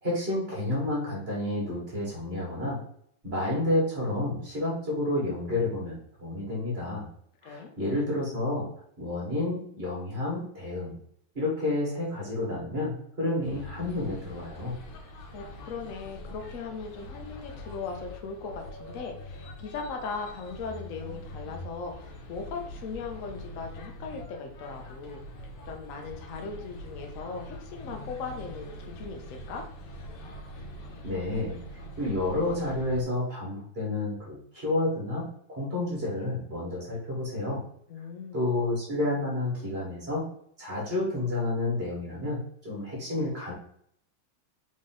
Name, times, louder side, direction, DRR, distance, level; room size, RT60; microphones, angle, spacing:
voice 1, 0.0-2.8 3.2-7.1 7.4-8.7 9.0-11.0 11.3-14.8 31.0-37.6 38.3-40.3 40.6-43.5, left 2 dB, 30° right, -4 dB, 1.8 m, -30 dB
sound 1, 13.4-33.0, left 1 dB, 75° left, 1.6 m, -43 dB
voice 2, 15.0-25.2 25.7-29.6 37.9-38.4, left 5 dB, 55° left, 3 dB, 0.9 m, -38 dB
3.9 x 3.6 x 3.7 m, 0.70 s
omnidirectional pair, 2.2 m